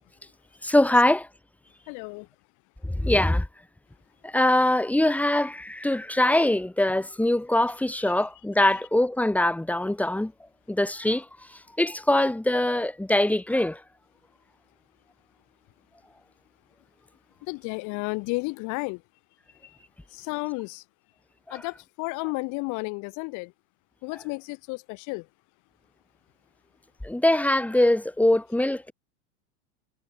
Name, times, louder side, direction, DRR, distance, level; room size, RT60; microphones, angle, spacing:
voice 1, 0.6-1.3 2.8-3.5 4.2-10.3 10.7-11.2 11.8-13.8 21.5-21.6 27.0-28.9, left 1 dB, 5° left, 4.8 m, -23 dB
voice 2, 1.9-2.3 17.4-19.0 20.1-20.8 21.5-23.5 24.0-25.3, left 28 dB, 55° left, 4.0 m, -32 dB
supercardioid pair, 130°, 36 cm